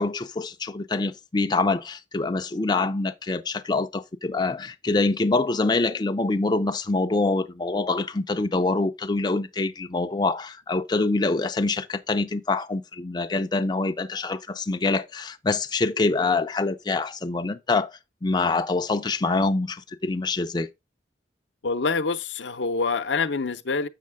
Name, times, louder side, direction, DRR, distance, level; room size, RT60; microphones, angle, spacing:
voice 1, 0.0-17.9 18.2-20.7, left 3 dB, 25° left, 0.5 m, -25 dB
voice 2, 21.6-23.9, left 4 dB, 75° left, 0.7 m, -26 dB
7.5 x 6.4 x 3.5 m
head